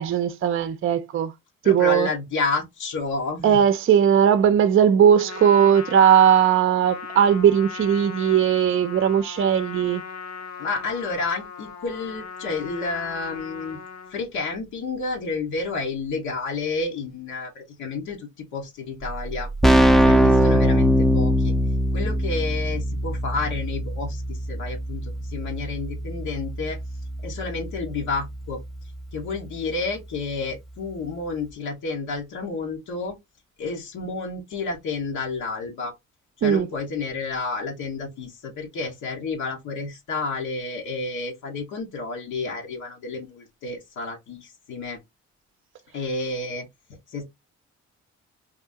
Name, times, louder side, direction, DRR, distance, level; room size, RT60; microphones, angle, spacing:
voice 1, 0.0-1.3 1.7-2.1 3.4-10.0 36.4-36.7, right 8 dB, 45° right, 0.5 m, -18 dB
voice 2, 1.6-3.6 10.6-13.8 14.1-19.5 20.0-21.5 21.9-26.8 27.2-28.6 29.1-33.2 33.6-35.9 36.4-45.0 45.9-46.7 47.1-47.2, left 3 dB, 85° left, 1.5 m, -30 dB
Trumpet, 5.1-14.2, left 6 dB, 70° left, 1.1 m, -38 dB
Keyboard (musical), 19.0-19.1 19.3-29.9, equal, ahead, 0.5 m, -23 dB
3.5 x 2.7 x 3.4 m
cardioid pair, 90°, 30 cm